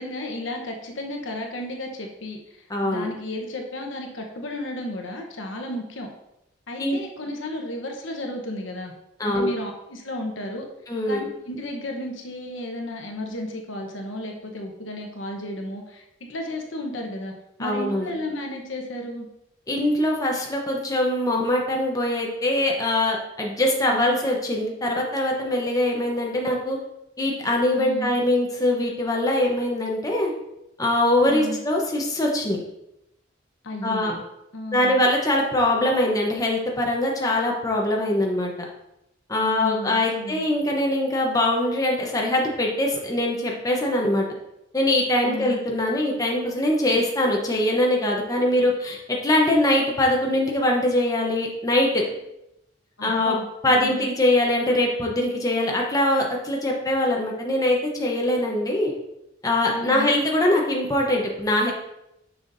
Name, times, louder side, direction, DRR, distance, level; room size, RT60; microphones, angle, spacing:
voice 1, 0.0-6.1 6.7-8.9 9.2-10.7 11.1-16.0 16.3-17.3 17.6-19.3 23.9-24.2 27.8-28.1 31.3-31.6 33.6-34.2 34.5-35.0 39.4-40.4 45.2-45.5 53.0-54.0 59.7-60.1, left 1 dB, 80° left, 2 dB, 1.0 m, -33 dB
voice 2, 2.7-3.1 6.8-7.0 9.2-9.5 10.9-11.3 17.6-18.1 19.7-26.8 27.2-30.3 30.8-32.6 33.8-34.1 34.7-38.5 39.3-44.2 44.7-52.1 53.0-53.3 53.6-58.9 59.4-61.7, left 1 dB, 20° left, -1 dB, 0.8 m, -22 dB
6.5 x 5.7 x 2.6 m, 0.86 s
head